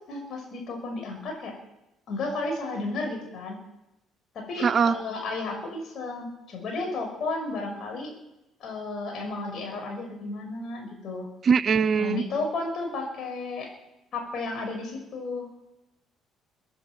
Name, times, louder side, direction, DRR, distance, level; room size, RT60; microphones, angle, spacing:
voice 1, 0.1-1.6 2.1-3.6 4.3-8.1 8.6-11.3 11.9-13.7 14.1-15.5, left 3 dB, 55° left, 2 dB, 5.8 m, -33 dB
voice 2, 4.6-5.0 11.4-12.2, right 6 dB, 45° right, 20 dB, 0.6 m, -21 dB
24.0 x 9.9 x 5.9 m, 0.91 s
figure-of-eight pair, 50°, 0 cm